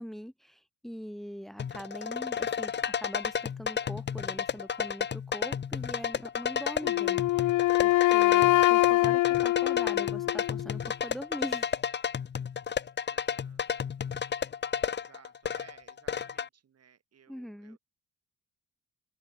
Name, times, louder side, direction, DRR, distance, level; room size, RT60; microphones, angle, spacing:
voice 1, 0.0-7.5 7.8-11.8 17.3-17.8, equal, ahead, 4.1 m, -42 dB
sound 1, 1.6-16.5, left 7 dB, 35° left, 0.9 m, -32 dB
Wind instrument woodwind instrument, 6.8-10.8, left 17 dB, 80° left, 0.6 m, -24 dB
voice 2, 13.1-13.7 14.8-17.8, right 8 dB, 55° right, 6.7 m, -59 dB
open air
cardioid pair, 90°, 30 cm